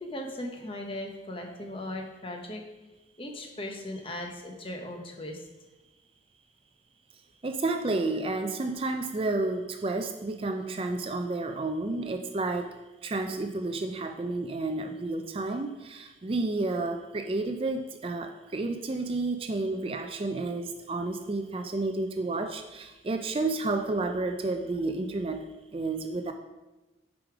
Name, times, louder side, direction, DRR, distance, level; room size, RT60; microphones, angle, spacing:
voice 1, 0.0-2.6 3.2-5.4, left 1 dB, 30° left, 2 dB, 0.9 m, -38 dB
voice 2, 7.4-12.7 13.0-25.5 25.7-26.3, right 2 dB, 30° right, 6 dB, 0.4 m, -31 dB
7.2 x 4.9 x 4.8 m, 1.1 s
head